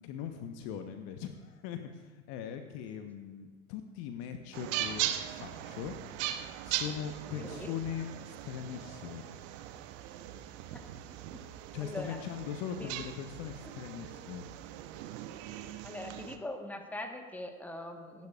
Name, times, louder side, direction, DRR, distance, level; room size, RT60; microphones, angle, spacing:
voice 1, 0.0-6.0 6.6-9.2 11.7-14.4, left 8 dB, 35° left, 7 dB, 1.1 m, -40 dB
sound 1, 4.5-16.4, right 12 dB, 35° right, 0.9 m, -40 dB
voice 2, 7.3-7.7 10.7-10.8 11.8-12.2 12.8-12.9 15.8-18.3, left 1 dB, 5° left, 4 dB, 1.4 m, -41 dB
26.5 x 11.5 x 2.5 m, 1.3 s
figure-of-eight pair, 95°, 42 cm